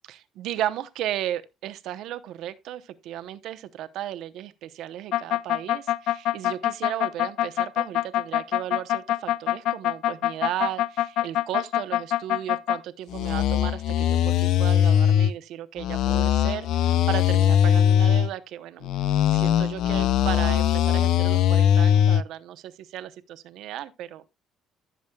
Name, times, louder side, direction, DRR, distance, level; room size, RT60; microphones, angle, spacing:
voice 1, 0.1-18.9 19.3-24.3, right 12 dB, 70° right, 0.8 m, -35 dB
sound 1, 5.1-12.8 13.1-15.3 15.8-18.3 18.8-22.2, left 10 dB, 70° left, 0.5 m, -21 dB
15.0 x 7.2 x 2.3 m
cardioid pair, 125°, 0 cm